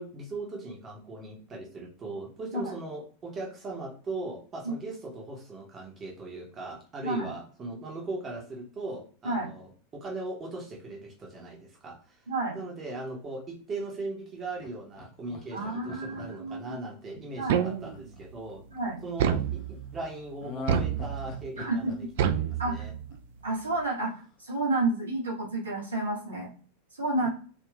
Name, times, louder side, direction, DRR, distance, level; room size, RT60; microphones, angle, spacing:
voice 1, 0.0-12.2 12.5-18.6 19.0-22.9 27.2-27.3, right 2 dB, 25° right, -1 dB, 0.8 m, -39 dB
voice 2, 12.3-12.6 15.5-16.8 17.4-17.6 18.7-19.0 21.6-21.9 22.6-22.8 23.4-26.5 26.9-27.3, right 2 dB, 75° right, -4 dB, 1.3 m, -30 dB
Laughter, 14.6-18.8 20.4-23.4 23.7-23.8, left 4 dB, 35° left, 0.6 m, -42 dB
sound 1, 17.5-18.2 19.2-20.0 20.7-21.5 22.2-23.2, right 9 dB, 55° right, 0.3 m, -28 dB
3.5 x 2.4 x 2.3 m, 0.41 s
figure-of-eight pair, 90°, 0 cm